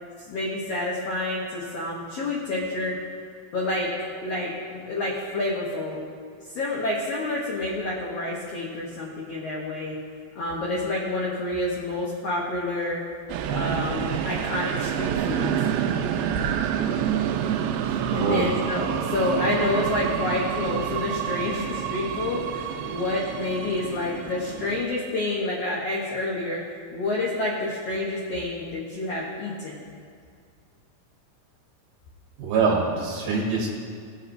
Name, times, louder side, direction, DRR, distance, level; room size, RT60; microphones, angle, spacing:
voice 1, 0.3-3.0 3.5-3.9 4.2-6.0 6.5-9.9 10.4-13.0 13.5-15.5 17.9-26.6 26.9-29.9, left 2 dB, 70° left, -4 dB, 1.5 m, -28 dB
sound 1, 13.3-24.8, right 9 dB, 85° right, 2.4 m, -28 dB
voice 2, 18.1-18.5 32.4-33.8, right 4 dB, 65° right, -2 dB, 2.5 m, -24 dB
17.0 x 7.4 x 2.6 m, 2.2 s
omnidirectional pair, 4.4 m